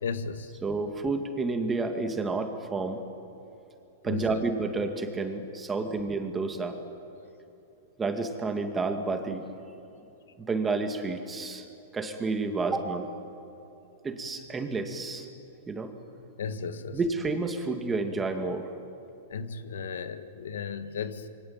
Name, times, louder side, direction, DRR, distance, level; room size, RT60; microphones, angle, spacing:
voice 1, 0.0-0.6 4.1-4.4 16.4-17.0 19.3-21.3, left 6 dB, 85° left, 11 dB, 1.6 m, -35 dB
voice 2, 0.6-3.0 4.0-6.8 8.0-9.4 10.4-11.7 11.9-13.1 14.0-15.3 15.7-15.9 16.9-18.7, right 3 dB, 10° right, 5 dB, 2.2 m, -30 dB
27.0 x 23.5 x 8.9 m, 2.8 s
hypercardioid pair, 150°, 0 cm